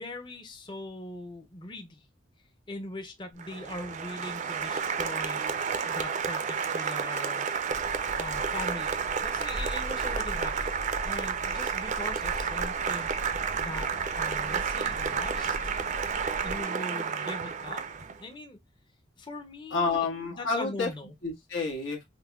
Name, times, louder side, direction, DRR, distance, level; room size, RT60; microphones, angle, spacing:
voice 1, 0.0-2.1 2.7-7.5 8.2-10.7 11.0-15.8 16.4-17.9 18.2-18.6 19.2-20.1 20.4-21.1, left 2 dB, 25° left, 0.6 m, -41 dB
Applause, 3.4-18.2, right 6 dB, 40° right, 0.4 m, -31 dB
sound 1, 7.7-16.6, left 1 dB, 65° left, 1.0 m, -41 dB
voice 2, 19.7-20.9 21.2-22.0, left 4 dB, 85° left, 1.4 m, -29 dB
5.7 x 2.2 x 2.2 m
head